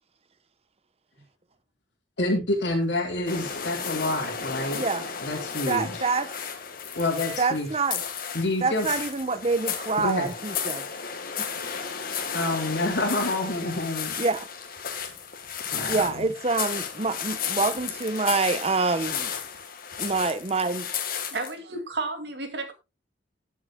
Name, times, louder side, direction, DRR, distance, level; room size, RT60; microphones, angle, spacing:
voice 1, 2.2-4.8 5.2-6.1 6.9-7.7 8.3-8.9 10.0-10.3 12.3-14.1 15.7-16.3, left 2 dB, 70° left, 2.7 m, -28 dB
sound 1, 3.3-21.5, left 7 dB, 50° left, 1.6 m, -34 dB
voice 2, 5.7-6.3 7.4-8.0 8.6-10.8 11.4-11.5 14.2-14.5 15.9-19.3 20.0-20.9, right 3 dB, 35° right, 0.9 m, -26 dB
voice 3, 21.3-22.7, right 3 dB, 65° right, 2.3 m, -32 dB
19.5 x 7.4 x 2.2 m
head